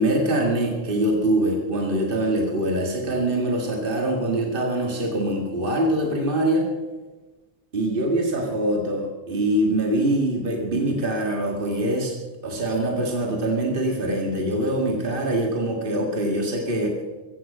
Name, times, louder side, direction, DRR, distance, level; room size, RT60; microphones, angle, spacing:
voice 1, 0.0-6.7 7.7-12.1 12.4-17.0, right 1 dB, 50° right, 1 dB, 2.1 m, -23 dB
16.0 x 15.0 x 5.4 m, 1.2 s
omnidirectional pair, 1.2 m